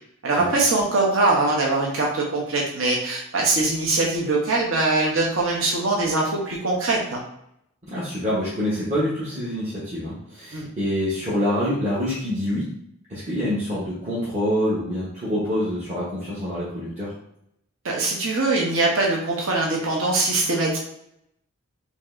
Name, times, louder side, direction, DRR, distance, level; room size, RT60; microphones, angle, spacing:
voice 1, 0.2-7.2 10.5-10.7 17.8-20.8, right 2 dB, 65° right, -2 dB, 0.8 m, -22 dB
voice 2, 7.9-12.7 13.1-17.1, equal, 30° right, -10 dB, 0.9 m, -26 dB
5.1 x 2.7 x 2.5 m, 0.75 s
head